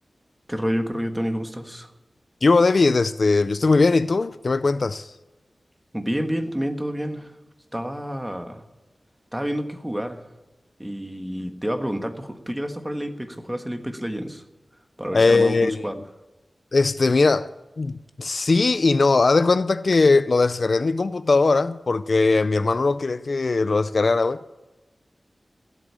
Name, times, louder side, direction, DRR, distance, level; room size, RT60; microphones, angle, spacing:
voice 1, 0.5-1.9 5.9-7.3 7.7-8.6 9.3-10.2 10.8-14.4 15.0-16.0, equal, 10° right, 1.5 m, -29 dB
voice 2, 2.4-5.1 15.1-15.9 16.7-17.5 17.8-24.4, left 3 dB, 60° left, 0.4 m, -20 dB
16.0 x 8.3 x 8.6 m
wide cardioid pair, 85°, 0 cm